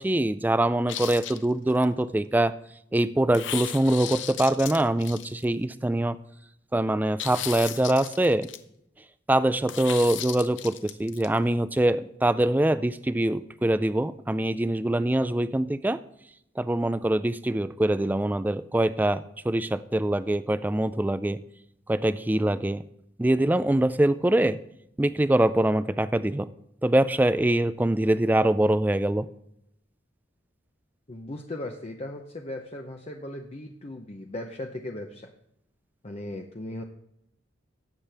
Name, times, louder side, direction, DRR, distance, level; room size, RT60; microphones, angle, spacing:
voice 1, 0.0-2.5 2.9-6.2 6.7-8.5 9.3-16.0 16.6-21.4 21.9-22.8 23.2-24.6 25.0-26.5 26.8-29.3, right 1 dB, 10° right, 14 dB, 0.3 m, -24 dB
sound 1, 0.9-1.9 3.3-5.6 7.2-8.6 9.7-11.3, left 11 dB, 75° left, 0.7 m, -36 dB
voice 2, 31.1-35.3 36.0-36.8, left 1 dB, 35° left, 3 dB, 0.6 m, -37 dB
16.5 x 7.4 x 3.4 m, 0.77 s
head